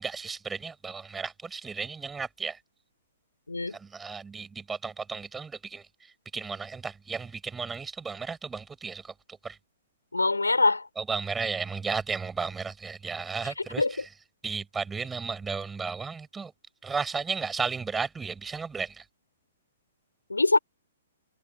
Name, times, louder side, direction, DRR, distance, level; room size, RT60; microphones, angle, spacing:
voice 1, 0.0-2.6 3.7-9.1 9.4-9.6 11.0-14.0 14.4-16.5 16.8-19.0, right 5 dB, 10° right, 7.8 m, -34 dB
voice 2, 10.1-10.9 13.8-13.9 20.3-20.6, left 3 dB, 80° left, 5.4 m, -23 dB
figure-of-eight pair, 120°, 0 cm